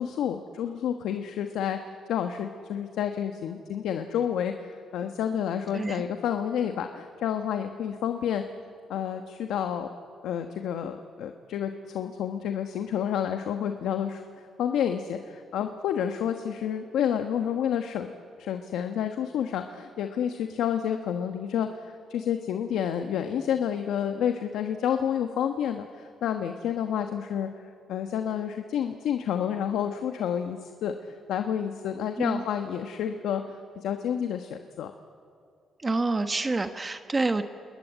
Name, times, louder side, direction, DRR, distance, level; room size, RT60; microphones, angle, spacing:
voice 1, 0.0-1.8 2.1-8.4 8.9-9.9 10.2-14.2 14.6-18.1 18.4-34.9, left 9 dB, 80° left, 6 dB, 1.2 m, -29 dB
voice 2, 35.8-37.4, right 3 dB, 25° right, 8 dB, 1.2 m, -27 dB
29.0 x 21.0 x 9.2 m, 2.4 s
cardioid pair, 90°, 0 cm